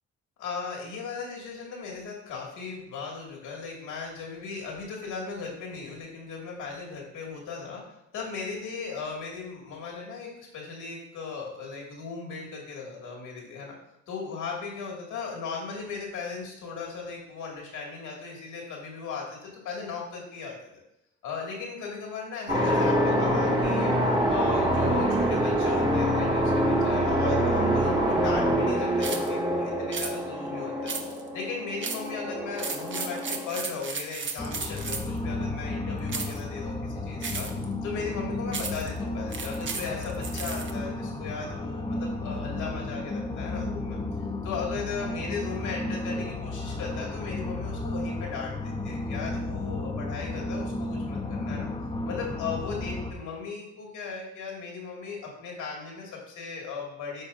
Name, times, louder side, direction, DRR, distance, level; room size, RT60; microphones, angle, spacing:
voice 1, 0.4-13.7 14.1-20.6 21.2-23.9 24.3-30.9 31.3-37.5 37.8-44.0 44.4-51.7 52.0-57.2, left 5 dB, 85° left, -1 dB, 2.2 m, -37 dB
sound 1, 22.5-33.9, equal, 15° right, 1.4 m, -25 dB
sound 2, 29.0-29.3 29.9-30.1 30.9-31.3 31.8-32.1 32.5-35.2 36.1-36.4 37.2-37.6 38.5-38.9 39.3-40.7, right 5 dB, 40° right, 0.9 m, -34 dB
sound 3, 34.4-53.1, left 2 dB, 15° left, 0.8 m, -33 dB
12.0 x 4.4 x 2.6 m, 0.85 s
cardioid pair, 90°, 30 cm